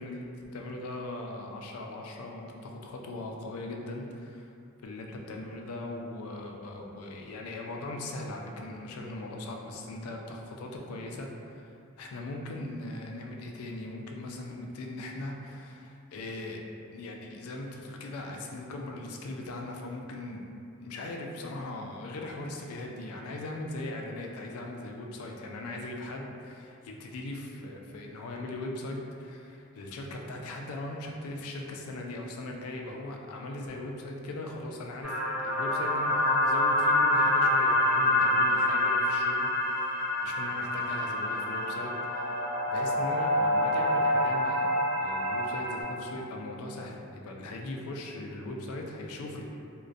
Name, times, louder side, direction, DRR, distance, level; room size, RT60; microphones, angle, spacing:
voice 1, 0.0-4.5 4.8-11.6 12.0-16.6 16.9-20.5 20.8-42.3 42.7-44.7 45.0-49.5, left 2 dB, 85° left, 1 dB, 0.3 m, -39 dB
sound 1, 35.0-45.8, left 1 dB, 5° right, 0.4 m, -26 dB
2.3 x 2.1 x 2.5 m, 2.5 s
head